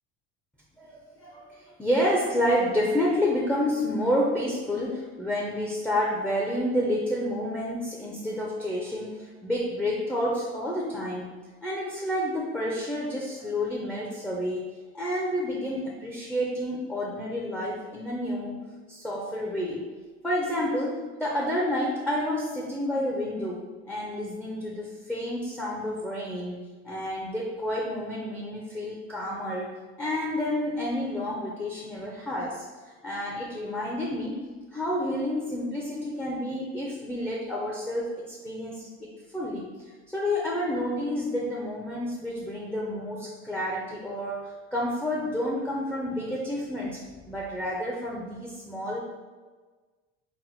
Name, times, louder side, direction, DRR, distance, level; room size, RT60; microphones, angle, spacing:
voice 1, 0.8-14.7 14.9-18.5 18.9-19.8 20.2-34.4 34.7-39.7 40.1-47.0 47.3-49.0, left 1 dB, 5° left, -3 dB, 0.4 m, -29 dB
4.0 x 2.0 x 4.3 m, 1.3 s
cardioid pair, 140°, 30 cm